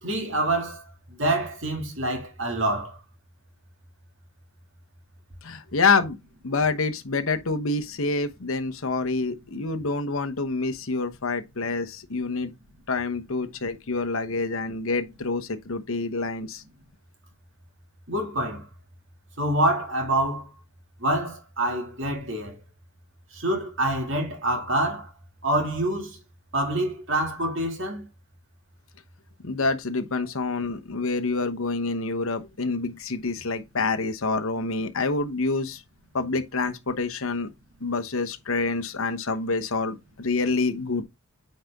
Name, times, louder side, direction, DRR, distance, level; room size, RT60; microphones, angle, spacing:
voice 1, 0.0-0.8 1.1-3.0 18.1-18.6 19.4-20.5 21.0-22.6 23.3-25.1 25.4-26.2 26.5-28.1, right 1 dB, 60° right, 2.2 m, -26 dB
voice 2, 5.4-6.2 6.4-12.5 12.9-16.6 29.4-35.8 36.1-37.5 37.8-41.0, left 3 dB, 70° left, 1.0 m, -27 dB
9.1 x 4.3 x 3.5 m
head